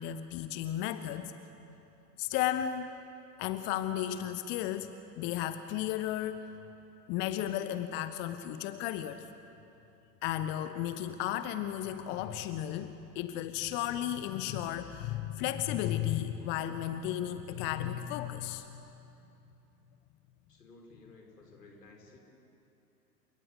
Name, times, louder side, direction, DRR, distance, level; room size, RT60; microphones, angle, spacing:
voice 1, 0.0-1.3 2.2-3.0 3.4-6.5 7.1-9.3 10.2-18.9, left 11 dB, 25° left, 11 dB, 0.7 m, -34 dB
voice 2, 20.5-22.2, left 2 dB, 70° left, 2 dB, 5.2 m, -55 dB
29.5 x 17.5 x 8.1 m, 2.9 s
figure-of-eight pair, 100°, 49 cm